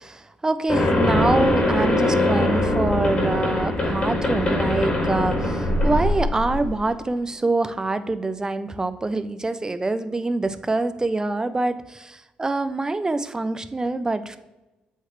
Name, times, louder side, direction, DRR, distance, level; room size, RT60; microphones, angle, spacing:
voice 1, 0.0-14.4, right 2 dB, 20° right, 11 dB, 0.5 m, -25 dB
sound 1, 0.7-6.8, left 1 dB, 35° left, 1.7 m, -22 dB
8.0 x 3.9 x 3.1 m, 1.1 s
cardioid pair, 70°, 3 cm